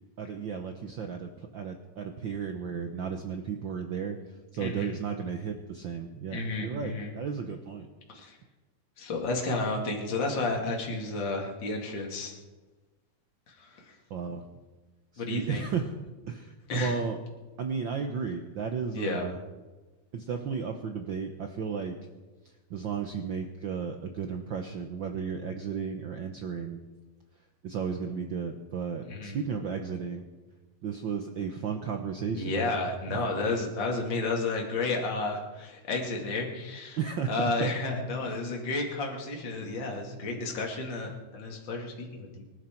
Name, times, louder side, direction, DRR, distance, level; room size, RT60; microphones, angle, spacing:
voice 1, 0.2-4.2 4.5-7.9 14.1-14.4 15.1-15.9 16.3-16.5 16.8-17.2 17.6-19.4 20.1-22.0 22.7-26.8 27.6-30.3 30.8-32.5 33.1-33.2 37.0-37.7 38.3-38.4, right 6 dB, 85° right, 5 dB, 1.0 m, -34 dB
voice 2, 4.6-4.9 6.3-7.1 8.1-8.4 9.0-12.3 13.5-13.9 15.2-15.6 16.7-17.0 18.9-19.3 29.1-29.4 32.3-37.0 37.3-42.3, left 3 dB, 40° left, 0 dB, 2.8 m, -32 dB
25.0 x 12.0 x 4.5 m, 1.2 s
omnidirectional pair, 3.4 m